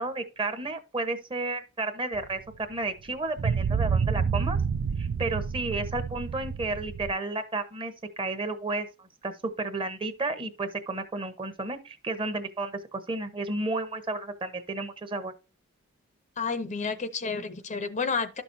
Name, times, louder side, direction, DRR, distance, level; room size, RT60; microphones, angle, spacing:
voice 1, 0.0-4.6 5.0-15.3, right 2 dB, 25° right, 1.1 m, -32 dB
sound 1, 2.1-2.3 3.4-7.1, right 6 dB, 65° right, 0.4 m, -28 dB
voice 2, 16.4-18.4, left 5 dB, 35° left, 0.6 m, -30 dB
12.0 x 6.0 x 2.7 m
head